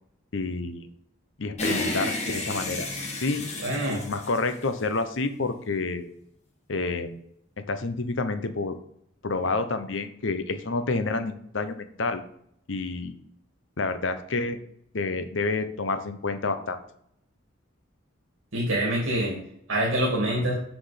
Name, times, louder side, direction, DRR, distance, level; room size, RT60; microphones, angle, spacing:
voice 1, 0.3-0.9 1.4-3.5 3.9-6.0 6.7-7.2 7.6-8.8 9.2-12.2 12.7-13.1 13.8-14.6 14.9-16.8, left 3 dB, 65° left, 10 dB, 0.8 m, -29 dB
sound 1, 1.6-5.1, left 1 dB, 35° left, 1.7 m, -31 dB
voice 2, 3.6-4.0 18.5-19.4 19.7-20.5, right 1 dB, 80° right, -4 dB, 2.4 m, -25 dB
6.2 x 6.0 x 5.1 m, 0.71 s
head